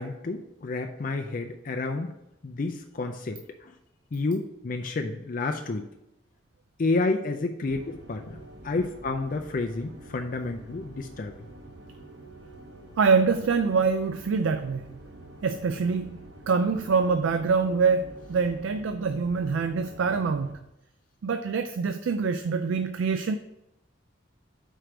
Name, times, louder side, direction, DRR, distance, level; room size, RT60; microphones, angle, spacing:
voice 1, 0.0-2.1 2.4-3.7 4.1-5.9 6.8-8.4 8.6-11.3, left 3 dB, 45° left, 4 dB, 0.4 m, -30 dB
sound 1, 7.6-20.5, right 1 dB, 55° right, 1.3 m, -47 dB
voice 2, 13.0-14.9 15.4-16.1 16.5-20.6 21.2-23.4, right 5 dB, 80° right, 8 dB, 0.4 m, -25 dB
5.0 x 4.5 x 6.0 m, 0.87 s
head